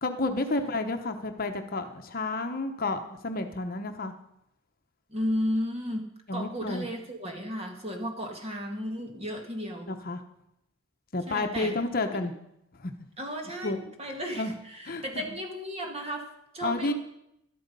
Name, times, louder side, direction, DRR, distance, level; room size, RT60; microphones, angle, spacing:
voice 1, 0.0-4.1 6.3-6.9 9.9-10.2 11.1-12.3 12.8-12.9 13.6-13.8 14.4-14.5 14.9-15.2 16.6-16.9, left 2 dB, 45° left, 6 dB, 0.9 m, -30 dB
voice 2, 5.1-9.9 11.3-11.8 12.1-12.3 13.2-16.9, equal, 30° right, 2 dB, 1.9 m, -34 dB
12.5 x 12.0 x 5.4 m, 0.79 s
head